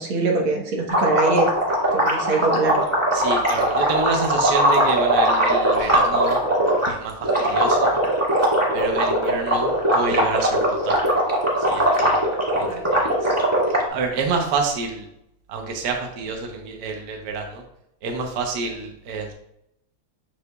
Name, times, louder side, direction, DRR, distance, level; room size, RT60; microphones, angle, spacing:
voice 1, 0.0-1.5 1.9-2.8 12.7-12.8, right 3 dB, 80° right, 0 dB, 2.1 m, -23 dB
sound 1, 0.9-6.9 7.2-13.8, right 1 dB, 10° right, 1.5 m, -20 dB
voice 2, 3.1-6.4 6.9-7.9 8.7-11.0 11.6-13.4 13.9-15.1 15.5-17.6 18.0-19.3, right 4 dB, 60° right, 3 dB, 1.3 m, -28 dB
6.9 x 6.5 x 2.3 m, 0.78 s
omnidirectional pair, 2.3 m